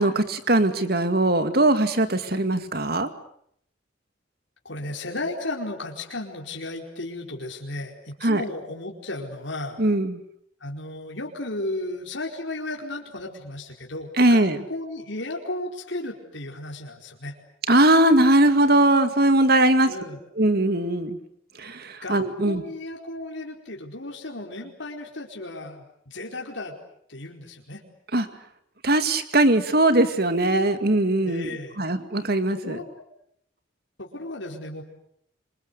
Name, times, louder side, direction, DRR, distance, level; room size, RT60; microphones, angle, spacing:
voice 1, 0.0-3.1 8.2-8.4 9.8-10.2 14.2-14.6 17.7-19.9 20.4-21.2 21.6-22.6 28.1-28.3 28.8-32.8, right 1 dB, 55° right, 9 dB, 2.2 m, -20 dB
voice 2, 4.6-9.8 10.6-17.3 19.8-20.2 22.0-26.7 27.1-27.8 31.2-31.7 32.5-32.8 34.0-34.8, left 2 dB, 70° left, 0 dB, 4.6 m, -34 dB
27.0 x 25.5 x 8.3 m, 0.69 s
head